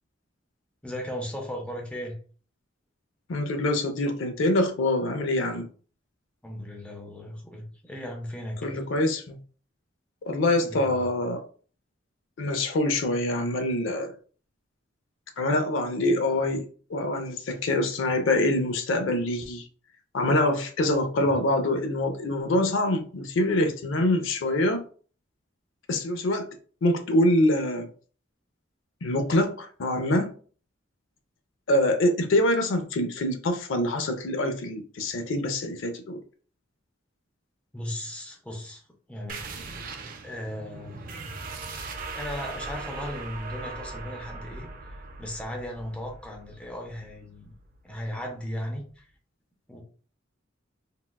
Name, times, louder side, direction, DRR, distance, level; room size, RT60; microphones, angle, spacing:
voice 1, 0.8-2.2 6.4-8.8 10.5-11.1 21.2-21.4 37.7-38.8 39.1-39.8 40.2-41.1 42.1-44.7 45.2-47.5 47.8-49.0 49.7-49.8, equal, 5° left, 0.5 m, -36 dB
voice 2, 3.3-5.7 8.6-9.4 10.2-11.4 12.4-14.1 15.4-19.6 20.1-24.8 25.9-26.5 26.8-27.9 29.0-30.3 31.7-36.2, left 1 dB, 80° left, 0.5 m, -25 dB
sound 1, 39.3-48.5, right 3 dB, 45° right, 0.5 m, -40 dB
3.6 x 2.2 x 2.2 m
head